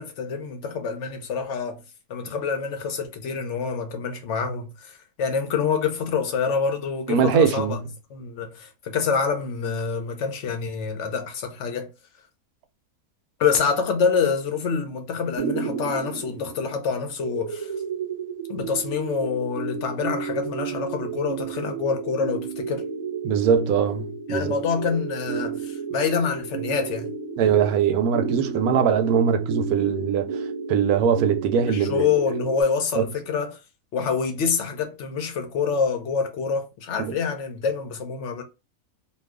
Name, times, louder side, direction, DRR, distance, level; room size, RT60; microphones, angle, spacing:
voice 1, 0.0-1.8 2.1-7.8 8.1-11.9 13.4-17.7 18.5-22.8 24.3-27.1 31.7-33.6 33.9-38.4, left 5 dB, 60° left, 0.8 m, -26 dB
voice 2, 7.1-7.8 23.2-24.5 27.4-32.1 33.0-33.1 37.0-37.1, right 7 dB, 75° right, 1.0 m, -22 dB
sound 1, 15.4-32.6, right 6 dB, 20° right, 0.9 m, -32 dB
2.7 x 2.3 x 3.5 m
omnidirectional pair, 1.6 m